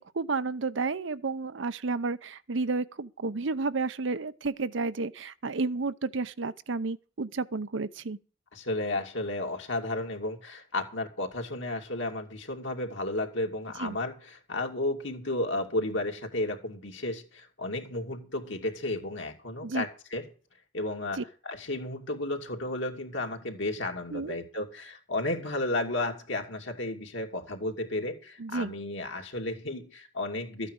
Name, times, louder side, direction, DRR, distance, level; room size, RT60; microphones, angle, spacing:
voice 1, 0.1-8.2 13.8-14.0 19.6-19.8 21.2-21.3 24.1-24.4 28.4-28.7, right 3 dB, 70° right, 0.7 m, -31 dB
voice 2, 8.5-20.3 20.7-30.7, left 2 dB, 70° left, 2.8 m, -33 dB
13.5 x 9.0 x 6.4 m
head